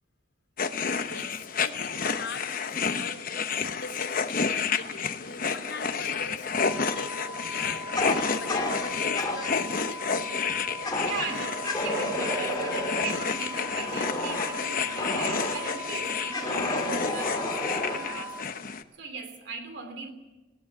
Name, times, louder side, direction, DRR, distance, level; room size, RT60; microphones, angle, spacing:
sound 1, 0.6-18.8, left 5 dB, 45° left, 0.9 m, -30 dB
voice 1, 1.0-3.3 3.8-11.0, left 4 dB, 70° left, 3.3 m, -42 dB
sound 2, 6.6-18.4, right 1 dB, 10° right, 1.8 m, -41 dB
Fire, 7.9-9.6 10.8-11.3 11.6-15.8 16.3-18.2, left 1 dB, 20° left, 3.0 m, -31 dB
voice 2, 11.0-18.4 19.0-20.1, right 4 dB, 60° right, 3.1 m, -39 dB
19.0 x 16.5 x 9.7 m
head